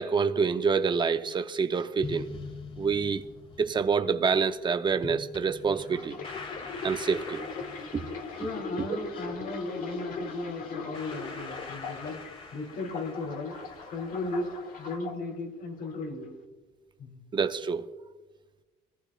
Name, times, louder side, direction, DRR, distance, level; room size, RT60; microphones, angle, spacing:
voice 1, 0.0-2.3 2.8-3.2 3.6-6.2 6.8-7.4 7.9-8.0 17.3-17.9, right 5 dB, 25° right, 0.7 m, -27 dB
sound 1, 2.0-15.0, left 3 dB, 30° left, 1.6 m, -45 dB
sound 2, 5.8-12.3 12.7-15.2 15.8-16.1, left 4 dB, 55° left, 1.7 m, -40 dB
voice 2, 8.4-12.2 12.5-13.6 13.9-14.5 14.8-16.3 17.0-17.2, left 2 dB, 70° left, 3.6 m, -35 dB
22.5 x 15.0 x 2.4 m
cardioid pair, 110°, 17 cm